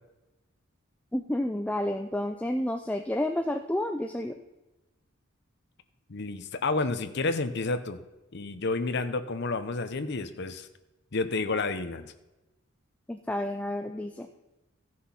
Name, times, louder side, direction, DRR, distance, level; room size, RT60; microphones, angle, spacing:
voice 1, 1.1-4.4 13.1-14.3, left 1 dB, 5° left, 6 dB, 0.4 m, -30 dB
voice 2, 6.1-8.0 8.3-10.7 11.1-12.1, left 3 dB, 55° left, 9 dB, 0.7 m, -30 dB
14.5 x 6.4 x 5.6 m, 1.0 s
head